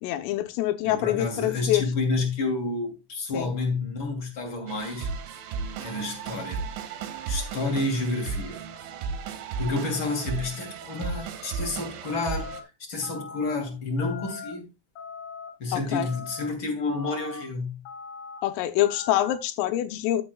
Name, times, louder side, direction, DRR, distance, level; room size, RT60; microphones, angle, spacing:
voice 1, 0.0-1.8 3.3-3.5 15.7-16.1 18.4-20.2, left 13 dB, 85° left, 3.5 m, -25 dB
voice 2, 0.8-5.1 5.8-6.6 7.3-8.5 9.6-12.5 12.9-14.7 15.6-17.8, left 3 dB, 35° left, 2.6 m, -29 dB
sound 1, 4.7-12.6, right 5 dB, 75° right, 3.3 m, -35 dB
sound 2, 12.1-12.6 13.0-13.6 14.0-14.5 15.0-15.5 15.9-16.5 16.9-17.4 17.9-18.4 18.8-19.4, left 5 dB, 60° left, 4.4 m, -40 dB
14.5 x 7.5 x 2.3 m
omnidirectional pair, 5.7 m